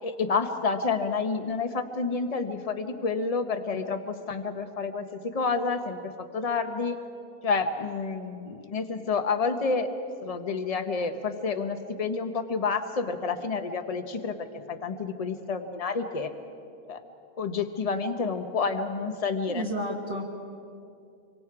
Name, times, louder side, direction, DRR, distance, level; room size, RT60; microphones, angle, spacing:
voice 1, 0.0-6.0 6.3-7.0 7.4-9.9 10.2-16.3 16.9-17.0 17.4-19.6, left 4 dB, 25° left, 7 dB, 1.0 m, -29 dB
voice 2, 19.5-20.2, equal, 25° right, -3 dB, 1.7 m, -31 dB
26.5 x 24.5 x 4.9 m, 2.5 s
omnidirectional pair, 1.7 m